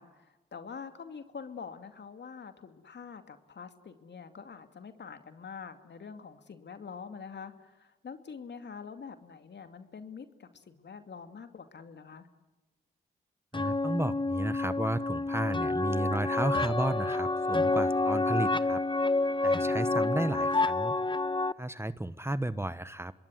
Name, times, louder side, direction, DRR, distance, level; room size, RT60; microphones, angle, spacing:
voice 1, 0.0-12.3 19.8-20.3, left 6 dB, 60° left, 8 dB, 2.5 m, -45 dB
sound 1, 13.5-21.5, left 2 dB, 25° left, 1.1 m, -28 dB
voice 2, 13.5-18.8 19.4-20.9 21.6-23.1, right 1 dB, 10° right, 15 dB, 1.2 m, -33 dB
26.5 x 21.0 x 9.6 m, 1.1 s
supercardioid pair, 40°, 20 cm